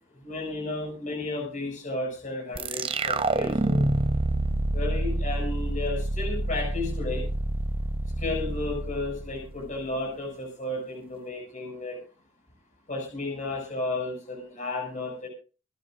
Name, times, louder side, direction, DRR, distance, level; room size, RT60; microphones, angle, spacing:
voice 1, 0.2-3.8 4.7-7.2 8.2-12.0 12.9-15.3, left 2 dB, 45° left, 1 dB, 7.0 m, -33 dB
sound 1, 2.5-9.8, right 2 dB, 30° right, 0.8 m, -28 dB
27.0 x 12.0 x 2.6 m, 0.34 s
head